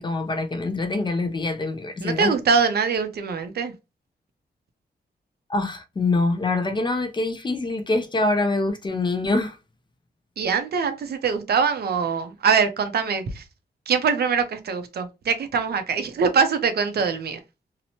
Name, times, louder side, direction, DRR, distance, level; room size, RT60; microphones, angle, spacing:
voice 1, 0.0-2.3 5.5-9.6, left 2 dB, 25° left, 0.4 m, -25 dB
voice 2, 2.0-3.7 10.4-13.4 13.9-17.4, right 5 dB, 65° right, 0.5 m, -23 dB
2.9 x 2.0 x 2.7 m
wide cardioid pair, 120°, 17 cm